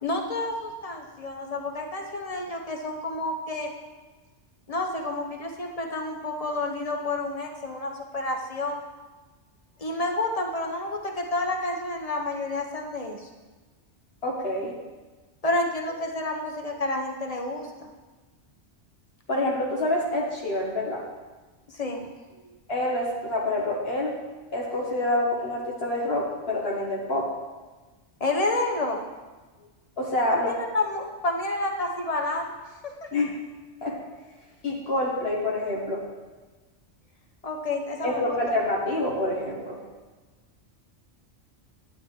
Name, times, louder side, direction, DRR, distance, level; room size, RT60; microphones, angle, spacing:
voice 1, 0.0-3.7 4.7-8.8 9.8-13.3 15.4-17.9 21.7-22.4 28.2-29.0 30.3-32.5 32.8-33.1 37.4-38.4, left 2 dB, 35° left, 2 dB, 1.1 m, -30 dB
voice 2, 14.2-14.8 19.3-21.1 22.7-24.2 24.5-27.3 30.0-30.5 33.1-33.4 33.8-34.0 34.6-36.0 38.0-39.8, left 1 dB, 60° left, -2 dB, 1.5 m, -27 dB
11.5 x 9.6 x 3.2 m, 1.3 s
omnidirectional pair, 1.2 m